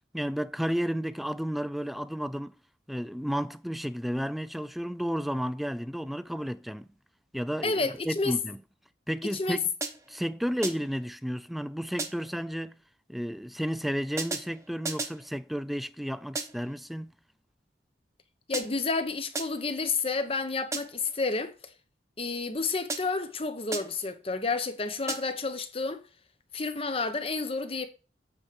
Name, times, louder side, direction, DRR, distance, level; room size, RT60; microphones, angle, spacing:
voice 1, 0.1-2.5 2.9-6.9 7.3-8.6 9.1-9.6 10.1-12.8 13.1-17.1, equal, ahead, 0.3 m, -32 dB
voice 2, 7.6-8.3 9.3-9.6 18.5-21.5 22.2-26.0 26.5-27.9, left 3 dB, 30° left, 1.0 m, -30 dB
sound 1, 9.8-10.2 10.6-11.0 12.0-12.4 14.2-15.3 16.3-16.8 18.5-19.0 19.3-19.8 20.7-21.1 22.9-23.3 23.7-24.1 25.1-25.5, right 3 dB, 15° right, 1.0 m, -36 dB
8.6 x 4.5 x 5.0 m
head